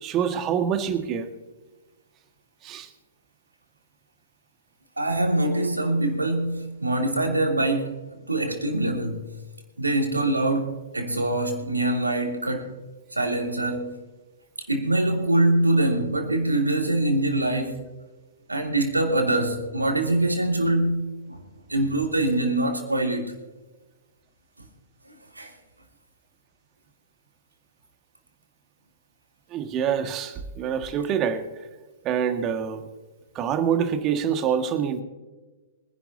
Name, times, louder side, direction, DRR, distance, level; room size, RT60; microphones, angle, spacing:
voice 1, 0.0-1.3 2.6-2.9 29.5-31.4 32.1-32.8 33.4-35.0, right 8 dB, 30° right, 1.8 m, -26 dB
voice 2, 5.0-8.0 8.3-9.4 9.8-12.8 13.1-14.0 14.6-17.9 18.5-21.4 21.7-23.4 25.3-25.5, right 1 dB, 85° right, 3.0 m, -24 dB
24.5 x 11.0 x 2.8 m
figure-of-eight pair, 110°, 0 cm